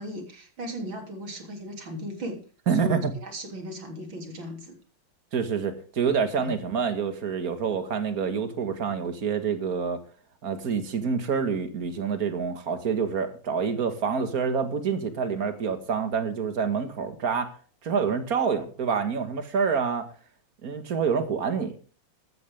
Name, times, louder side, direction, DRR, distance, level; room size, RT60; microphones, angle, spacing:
voice 1, 0.0-2.4 2.7-4.8 6.4-6.5, equal, 85° right, 4 dB, 4.0 m, -37 dB
voice 2, 2.7-3.1 5.3-10.0 10.4-17.5 17.8-20.1 20.6-21.8, right 6 dB, 50° right, 8 dB, 2.2 m, -27 dB
15.0 x 13.5 x 3.6 m, 0.37 s
omnidirectional pair, 2.1 m